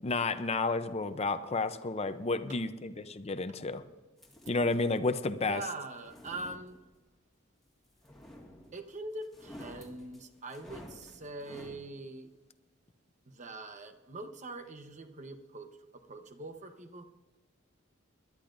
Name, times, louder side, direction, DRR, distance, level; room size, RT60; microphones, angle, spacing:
voice 1, 0.0-3.8 4.5-5.6, left 3 dB, 30° left, 10 dB, 0.6 m, -31 dB
sound 1, 4.2-5.0 5.8-7.1 8.0-8.9 9.2-11.8, left 1 dB, ahead, 1.9 m, -51 dB
voice 2, 5.4-6.8 8.7-12.3 13.3-15.7 15.9-17.0, right 2 dB, 35° right, 7 dB, 1.0 m, -43 dB
21.5 x 12.0 x 2.6 m, 1.2 s
head